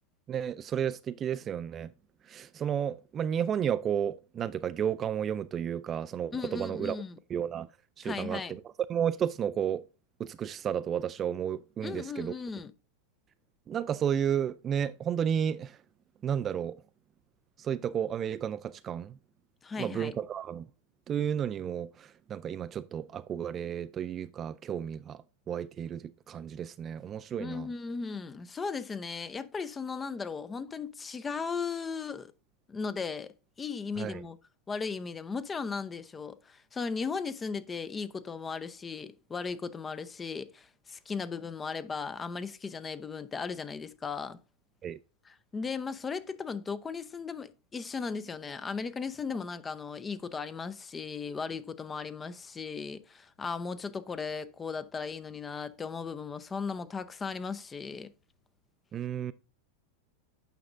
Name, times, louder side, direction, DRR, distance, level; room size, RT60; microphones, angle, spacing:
voice 1, 0.3-1.9 2.3-7.0 7.3-7.7 8.0-8.6 8.9-9.8 10.2-12.3 13.7-15.7 16.2-16.8 17.6-18.6 18.8-19.1 19.8-20.7 21.1-21.9 22.3-25.2 25.5-26.0 26.3-27.7 34.0-34.2 44.8-45.0 58.9-59.3, right 8 dB, 30° right, 0.4 m, -32 dB
voice 2, 6.3-7.2 8.0-8.5 11.8-12.7 19.6-20.2 27.4-32.3 32.7-34.4 34.7-44.4 45.2-58.1, left 5 dB, 20° left, 0.6 m, -37 dB
9.2 x 6.0 x 2.5 m
figure-of-eight pair, 90°, 0 cm